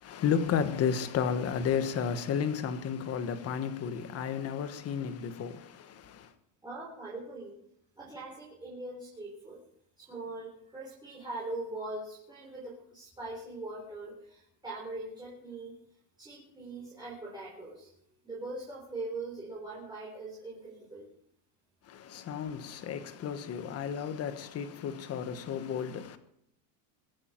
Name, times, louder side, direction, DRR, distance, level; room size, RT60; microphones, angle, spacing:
voice 1, 0.0-6.3 21.9-26.2, left 7 dB, 30° left, 1.4 m, -32 dB
voice 2, 6.6-7.6 8.0-9.6 10.0-15.8 16.2-17.9 18.2-21.0, right 2 dB, 10° right, 4.1 m, -41 dB
23.0 x 9.6 x 4.6 m
cardioid pair, 155°, 48 cm